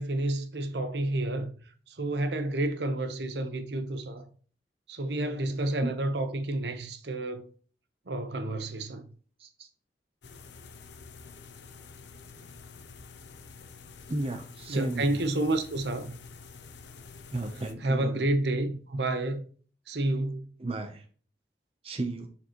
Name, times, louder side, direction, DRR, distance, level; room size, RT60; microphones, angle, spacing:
voice 1, 0.0-1.5 1.9-4.3 4.9-7.5 8.1-9.1 14.7-16.2 17.8-19.4 19.9-20.5, right 2 dB, 70° right, 0.9 m, -30 dB
sound 1, 10.2-17.7, left 5 dB, 80° left, 0.8 m, -48 dB
voice 2, 14.1-15.2 17.3-18.3 20.6-21.0 21.8-22.3, right 2 dB, 35° right, 0.7 m, -34 dB
7.0 x 6.8 x 3.0 m
head